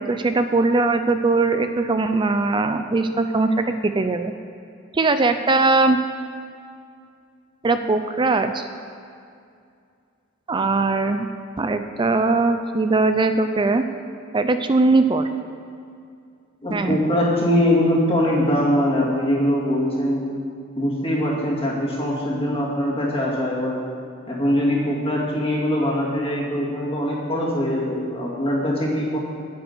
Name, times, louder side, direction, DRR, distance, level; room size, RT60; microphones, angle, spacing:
voice 1, 0.0-4.3 4.9-6.0 7.6-8.7 10.5-11.3 11.6-13.8 14.3-15.3 16.7-17.0, right 3 dB, 25° right, 9 dB, 0.4 m, -20 dB
voice 2, 16.6-20.3 20.8-23.8 24.3-29.2, equal, 30° left, -4 dB, 2.2 m, -22 dB
9.2 x 7.8 x 8.0 m, 2.4 s
head